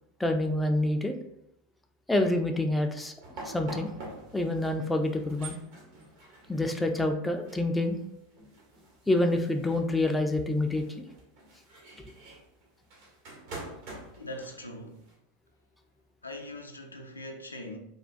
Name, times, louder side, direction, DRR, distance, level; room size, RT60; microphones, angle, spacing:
voice 1, 0.2-1.1 2.1-3.1 3.4-3.9 4.3-5.6 6.5-8.0 9.1-11.0, left 1 dB, 5° left, 0.3 m, -27 dB
sound 1, 3.2-15.1, right 2 dB, 55° right, 0.9 m, -47 dB
voice 2, 14.2-15.0 16.2-17.8, left 1 dB, 85° left, 0.4 m, -41 dB
3.4 x 2.1 x 2.4 m
figure-of-eight pair, 85°, 0 cm